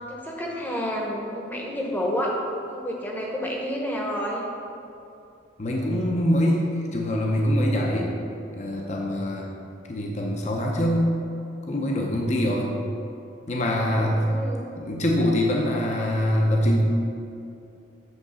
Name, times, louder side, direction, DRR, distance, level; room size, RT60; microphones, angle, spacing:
voice 1, 0.1-2.4 2.7-4.4 14.1-14.7, equal, 10° left, -2 dB, 0.9 m, -29 dB
voice 2, 5.6-8.1 8.5-9.5 9.9-11.1 11.7-12.7 13.5-14.2 14.8-16.8, left 1 dB, 35° left, -1 dB, 0.7 m, -24 dB
8.0 x 3.9 x 6.3 m, 2.6 s
head